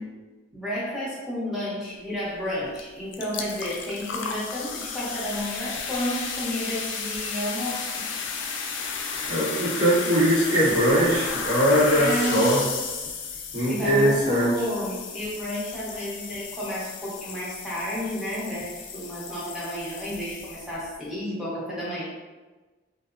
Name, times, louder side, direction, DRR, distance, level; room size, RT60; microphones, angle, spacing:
voice 1, 0.5-8.0 11.9-12.6 13.6-22.0, equal, 5° right, -9 dB, 0.7 m, -31 dB
sound 1, 2.7-2.8 3.1-20.9, left 5 dB, 80° left, 0.3 m, -33 dB
voice 2, 9.3-12.6 13.5-14.5, equal, 80° right, -14 dB, 1.4 m, -21 dB
2.7 x 2.0 x 2.5 m, 1.3 s
head